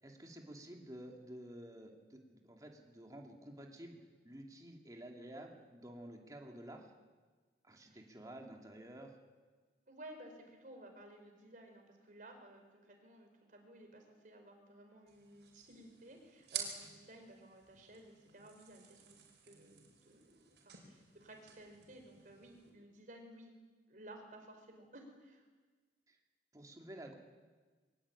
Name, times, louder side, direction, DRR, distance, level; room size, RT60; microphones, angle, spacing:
voice 1, 0.0-4.0 4.2-6.9 7.6-9.1 26.1-26.2 26.5-27.2, right 1 dB, 20° right, 1 dB, 2.9 m, -51 dB
voice 2, 9.9-20.4 20.6-23.5 23.9-25.4, right 1 dB, 50° right, 4 dB, 5.0 m, -56 dB
sound 1, 15.1-22.7, right 7 dB, 80° right, 5.2 m, -51 dB
22.5 x 20.0 x 8.9 m, 1.4 s
head